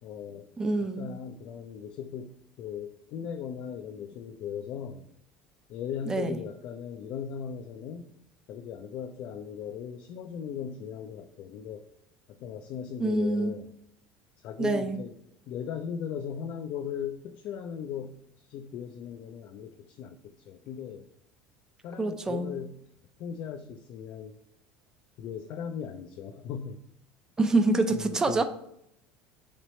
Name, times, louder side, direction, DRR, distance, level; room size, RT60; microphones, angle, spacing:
voice 1, 0.0-0.5 0.8-5.1 5.7-8.1 8.5-11.8 12.3-13.7 14.4-15.1 15.5-21.1 21.8-22.8 23.2-24.3 25.2-26.8 27.9-28.4, left 8 dB, 55° left, 6 dB, 0.3 m, -38 dB
voice 2, 0.6-1.1 6.1-6.4 13.0-13.5 14.6-15.0 22.0-22.5 27.4-28.4, right 2 dB, 15° right, 8 dB, 0.4 m, -26 dB
4.0 x 3.2 x 4.2 m, 0.76 s
cardioid pair, 135°, 4 cm